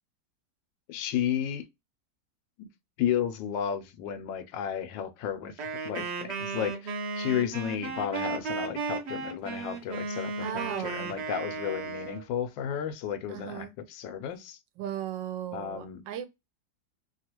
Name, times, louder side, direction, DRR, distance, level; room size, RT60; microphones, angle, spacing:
voice 1, 0.9-1.6 2.6-2.7 3.0-14.6 15.5-16.0, left 9 dB, 90° left, 1.3 m, -33 dB
Wind instrument woodwind instrument, 5.6-12.2, right 4 dB, 60° right, 0.7 m, -35 dB
voice 2, 10.4-11.1 13.3-13.7 14.8-16.3, right 10 dB, 85° right, 1.3 m, -36 dB
3.1 x 2.3 x 2.8 m
omnidirectional pair, 1.9 m